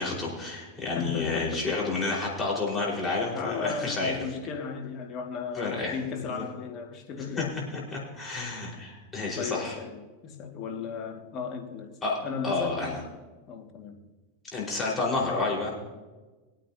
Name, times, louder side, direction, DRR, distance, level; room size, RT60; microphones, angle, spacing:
voice 1, 0.0-4.3 5.5-6.0 6.3-6.4 7.4-7.5 7.7-9.8 12.0-12.2 12.4-13.0 14.5-15.7, left 3 dB, 20° left, 4.6 m, -30 dB
voice 2, 0.9-1.7 3.3-7.6 9.4-12.0 12.2-13.0 13.5-14.0, left 5 dB, 40° left, 1.9 m, -35 dB
22.5 x 9.1 x 2.8 m
hypercardioid pair, 110°, 0 cm